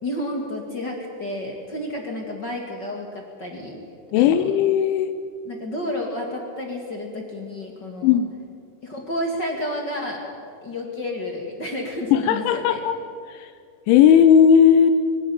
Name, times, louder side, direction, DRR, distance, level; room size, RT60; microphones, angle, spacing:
voice 1, 0.0-3.8 4.1-4.5 5.4-8.2 8.8-10.2 10.6-12.8, left 1 dB, 45° left, 1 dB, 1.5 m, -31 dB
voice 2, 4.1-5.1 8.0-8.3 12.1-13.0 13.3-13.5 13.9-14.9, left 8 dB, 85° left, 9 dB, 3.2 m, -16 dB
23.5 x 13.5 x 10.0 m, 2.3 s
omnidirectional pair, 5.3 m